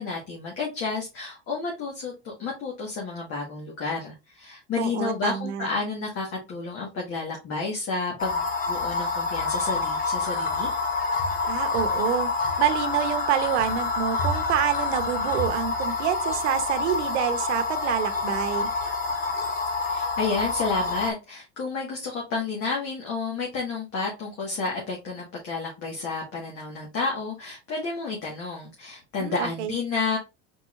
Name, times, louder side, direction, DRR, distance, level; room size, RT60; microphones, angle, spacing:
voice 1, 0.0-10.7 19.8-30.2, left 4 dB, 40° left, 1.6 m, -31 dB
voice 2, 4.8-5.7 11.5-12.3 12.6-18.7 29.2-29.7, right 10 dB, 90° right, 0.9 m, -27 dB
sound 1, 8.2-21.1, left 3 dB, 25° left, 0.8 m, -27 dB
4.6 x 4.0 x 2.5 m
supercardioid pair, 120°, 34 cm